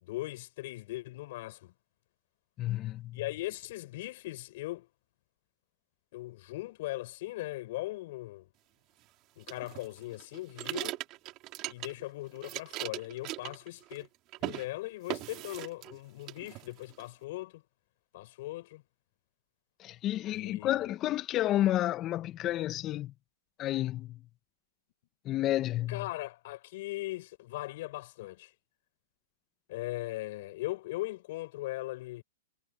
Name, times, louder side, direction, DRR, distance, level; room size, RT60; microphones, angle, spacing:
voice 1, 0.0-1.7 3.1-4.9 6.1-8.5 9.4-11.0 11.7-14.1 14.4-17.6 18.1-18.8 20.3-20.9 25.9-28.5 29.7-32.2, left 18 dB, 55° left, 5.1 m, -39 dB
voice 2, 2.6-3.2 19.8-23.1 23.6-24.2 25.3-26.1, left 14 dB, 30° left, 1.7 m, -31 dB
sound 1, 9.5-12.1 12.4-14.1 14.3-14.7 15.1-16.0 16.3-17.0, right 18 dB, 40° right, 3.0 m, -39 dB
hypercardioid pair, 120°, 0 cm